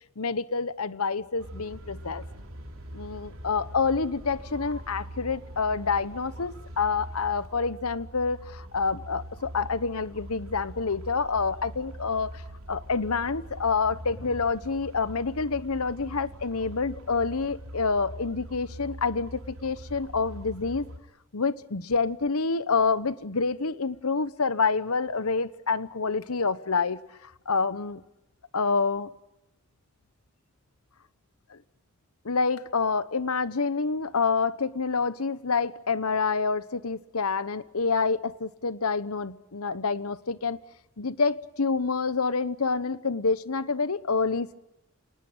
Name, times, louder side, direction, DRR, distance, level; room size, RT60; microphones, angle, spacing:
voice 1, 0.2-2.2 2.9-12.3 12.7-20.8 21.3-27.0 27.5-28.0 28.5-29.1 31.5-31.6 32.2-40.6 41.0-44.6, left 4 dB, 80° left, 16 dB, 1.0 m, -27 dB
sound 1, 1.4-21.0, right 1 dB, 70° right, 3.5 m, -43 dB
26.5 x 19.5 x 9.0 m, 0.93 s
head